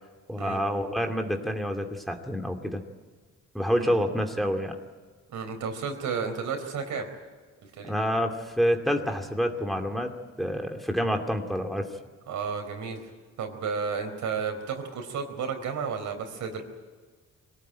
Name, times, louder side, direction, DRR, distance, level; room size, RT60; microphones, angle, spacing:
voice 1, 0.3-2.8 3.5-4.8 7.8-10.1 10.4-11.9, equal, ahead, 3 dB, 2.4 m, -27 dB
voice 2, 5.3-7.1 7.8-7.9 12.3-13.1 13.4-16.6, right 5 dB, 75° right, 5 dB, 4.4 m, -32 dB
22.5 x 18.0 x 9.2 m, 1.4 s
cardioid pair, 90°, 30 cm